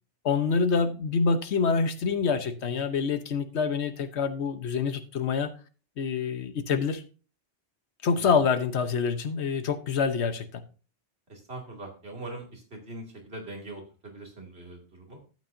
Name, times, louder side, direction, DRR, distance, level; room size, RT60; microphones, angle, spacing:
voice 1, 0.2-5.5 6.0-7.0 8.0-10.6, left 5 dB, 75° left, 10 dB, 1.1 m, -26 dB
voice 2, 11.3-15.2, right 2 dB, 65° right, 0 dB, 2.8 m, -42 dB
12.0 x 8.5 x 2.6 m, 0.37 s
omnidirectional pair, 1.1 m